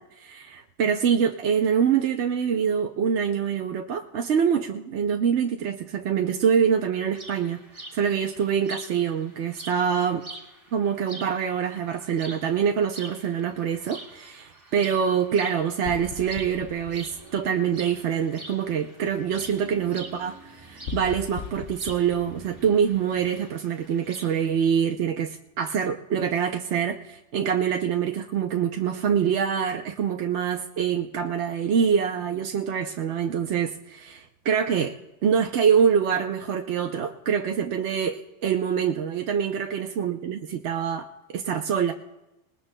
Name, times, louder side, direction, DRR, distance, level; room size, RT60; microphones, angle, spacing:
voice 1, 0.0-10.2 10.7-35.0 35.2-41.9, right 7 dB, 80° right, 4 dB, 1.0 m, -25 dB
sound 1, 7.1-24.5, right 2 dB, 55° right, 2.6 m, -46 dB
sound 2, 15.8-18.1 20.8-23.4, left 7 dB, 85° left, 1.1 m, -39 dB
sound 3, 16.3-22.8, right 2 dB, 25° right, 5.6 m, -51 dB
26.0 x 20.0 x 2.2 m, 0.98 s
omnidirectional pair, 1.2 m